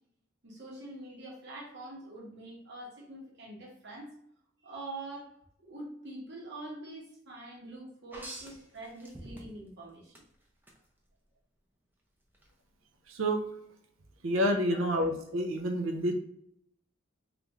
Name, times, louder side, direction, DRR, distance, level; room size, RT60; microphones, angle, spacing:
voice 1, 0.4-4.1 4.6-5.3 5.6-10.1 14.7-14.9, right 2 dB, 55° right, -3 dB, 1.1 m, -45 dB
sound 1, 8.1-9.7 10.1-10.8 12.3-12.5, right 1 dB, 10° right, 0.5 m, -46 dB
voice 2, 13.1-13.4 14.2-16.1, equal, 80° right, 5 dB, 0.6 m, -28 dB
3.4 x 2.4 x 3.0 m, 0.71 s
head